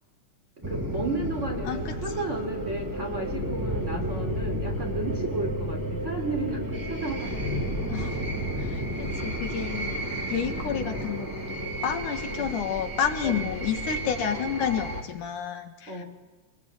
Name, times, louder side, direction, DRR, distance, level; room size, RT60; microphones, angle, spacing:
sound 1, 0.6-15.0, equal, 5° right, 3.1 m, -32 dB
voice 1, 0.6-7.7 12.3-12.5 13.2-13.5 15.9-16.1, right 2 dB, 20° right, 2 dB, 3.6 m, -33 dB
voice 2, 7.9-8.2 8.6-16.1, left 8 dB, 75° left, 5 dB, 3.1 m, -30 dB
25.5 x 21.5 x 9.0 m, 1.2 s
omnidirectional pair, 3.6 m